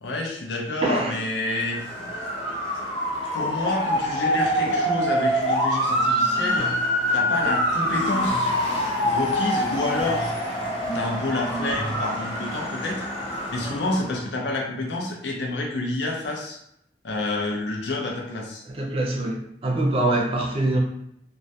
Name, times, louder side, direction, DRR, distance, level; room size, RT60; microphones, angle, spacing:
voice 1, 0.0-1.8 3.3-6.7 7.1-8.5 9.1-10.4 10.9-16.6 17.0-18.6, left 2 dB, 75° left, -1 dB, 0.5 m, -28 dB
voice 2, 0.8-1.2 18.7-20.8, right 2 dB, 35° right, 0 dB, 0.4 m, -24 dB
Motor vehicle (road) / Siren, 1.5-14.2, equal, 30° left, 0.5 m, -25 dB
sound 1, 5.8-12.3, equal, ahead, 0.8 m, -37 dB
2.2 x 2.1 x 2.7 m, 0.75 s
head